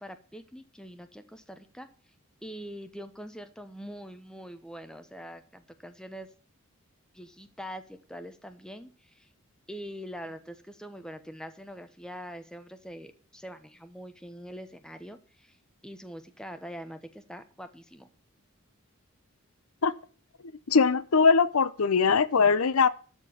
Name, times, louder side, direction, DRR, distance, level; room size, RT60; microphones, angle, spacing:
voice 1, 0.0-1.9 2.4-6.3 7.1-9.3 9.7-15.6 15.8-18.1, equal, 5° left, 0.9 m, -43 dB
voice 2, 20.7-22.9, left 5 dB, 80° left, 0.7 m, -21 dB
13.0 x 4.5 x 8.2 m
head